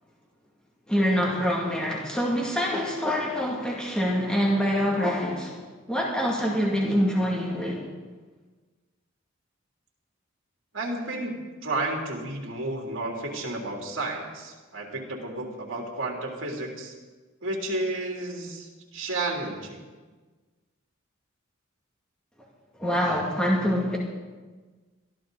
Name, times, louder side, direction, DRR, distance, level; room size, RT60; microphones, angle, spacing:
voice 1, 0.9-5.6 5.9-7.8 22.8-24.0, equal, 5° left, -3 dB, 2.2 m, -25 dB
voice 2, 10.7-11.3 11.6-16.9 17.4-19.8, right 2 dB, 65° right, -1 dB, 3.3 m, -32 dB
22.0 x 14.0 x 4.0 m, 1.3 s
head